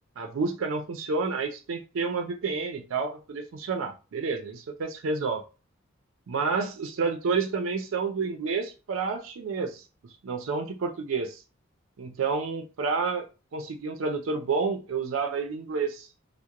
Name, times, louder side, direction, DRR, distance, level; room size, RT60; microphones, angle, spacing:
voice 1, 0.2-5.4 6.3-9.8 10.2-11.4 12.0-13.3 13.5-16.1, right 4 dB, 80° right, 4 dB, 0.4 m, -29 dB
2.8 x 2.0 x 2.3 m, 0.32 s
head